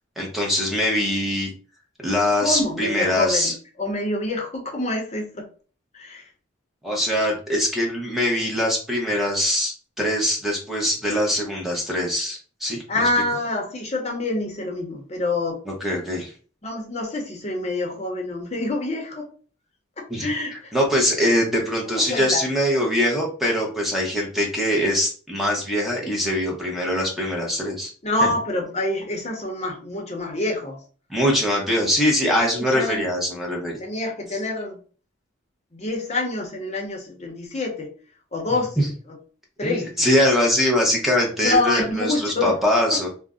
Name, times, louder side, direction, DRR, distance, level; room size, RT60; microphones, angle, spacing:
voice 1, 0.2-1.5 2.0-3.5 6.8-13.1 15.8-16.3 20.1-27.9 31.1-33.8 38.8-38.9 39.6-43.1, equal, ahead, -1 dB, 0.8 m, -22 dB
voice 2, 2.4-5.5 5.9-6.3 12.9-15.6 16.6-19.3 20.0-20.7 21.9-22.4 28.0-30.8 32.4-33.0 33.8-34.8 35.7-37.9 38.3-39.2 39.6-40.1 41.4-42.6 42.9-43.0, left 2 dB, 35° left, 1 dB, 0.7 m, -26 dB
2.5 x 2.1 x 3.5 m, 0.38 s
head